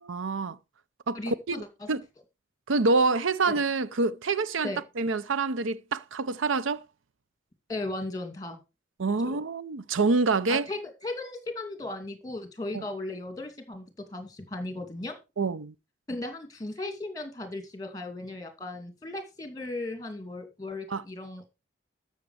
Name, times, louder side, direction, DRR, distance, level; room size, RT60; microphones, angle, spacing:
voice 1, 0.1-0.6 1.1-1.6 1.9-2.0 2.7-6.8 9.0-10.7 15.4-15.7 20.9-21.0, right 3 dB, 80° right, 0.6 m, -26 dB
voice 2, 1.1-1.9 3.5-3.6 4.6-4.8 7.7-8.6 9.2-9.4 10.5-13.9 14.1-15.1 16.1-21.5, left 2 dB, 20° left, 2.5 m, -36 dB
13.0 x 6.7 x 4.8 m
head